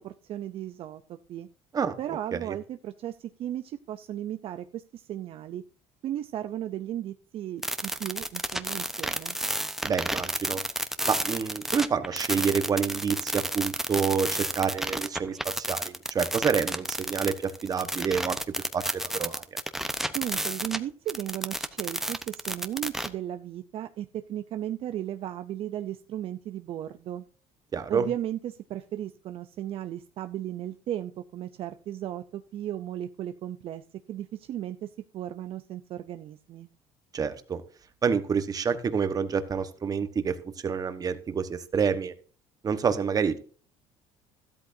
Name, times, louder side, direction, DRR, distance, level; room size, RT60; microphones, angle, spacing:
voice 1, 0.0-1.5 2.0-5.6 6.0-9.4 20.1-27.2 27.9-36.7, right 12 dB, 55° right, 9 dB, 0.6 m, -35 dB
sound 1, 7.6-20.8 21.1-23.1, right 1 dB, 5° right, 0.9 m, -31 dB
voice 2, 9.8-10.6 11.1-18.4 18.7-19.4 27.7-28.1 37.1-37.6 38.0-40.4 40.6-42.1 42.6-43.4, right 6 dB, 30° right, 10 dB, 1.3 m, -28 dB
13.5 x 12.5 x 2.7 m, 0.41 s
cardioid pair, 120°, 12 cm